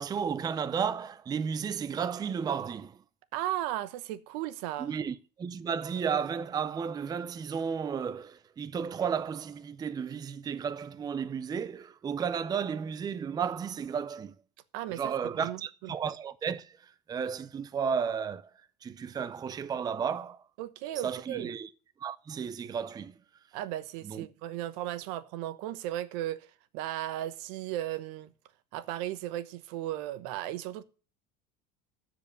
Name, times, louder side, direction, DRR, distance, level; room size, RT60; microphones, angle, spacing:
voice 1, 0.0-3.0 4.8-14.3 14.9-18.5 18.8-20.4 21.0-21.7 22.0-23.1 24.0-24.3, right 7 dB, 20° right, 0.5 m, -33 dB
voice 2, 3.3-5.0 14.7-15.1 15.4-15.9 20.6-21.5 23.5-26.5 26.7-28.3 28.7-30.8, right 13 dB, 70° right, 1.0 m, -36 dB
13.5 x 5.1 x 6.9 m
supercardioid pair, 130°, 21 cm